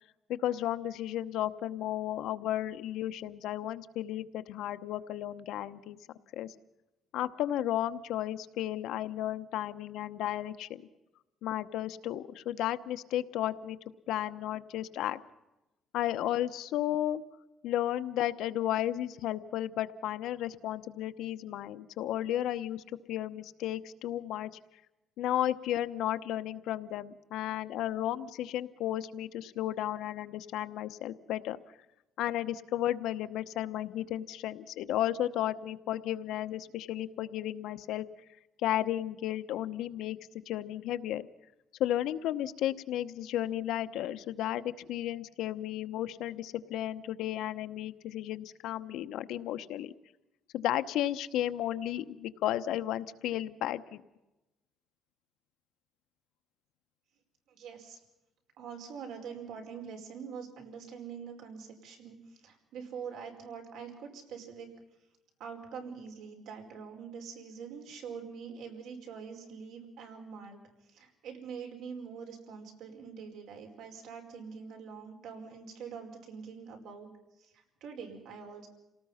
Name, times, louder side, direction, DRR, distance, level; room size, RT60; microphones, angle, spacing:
voice 1, 0.3-6.0 6.3-6.5 7.1-10.8 11.4-13.8 14.1-15.2 15.9-17.2 17.6-22.8 23.1-24.5 25.2-31.6 32.2-38.1 38.6-41.3 41.8-49.9 50.5-54.0, left 12 dB, 80° left, 11 dB, 0.9 m, -33 dB
voice 2, 57.5-58.0 58.6-64.7 65.4-70.6 70.9-77.1 77.4-78.7, right 6 dB, 75° right, 3 dB, 4.9 m, -44 dB
28.0 x 18.5 x 5.7 m, 0.97 s
cardioid pair, 170°, 0 cm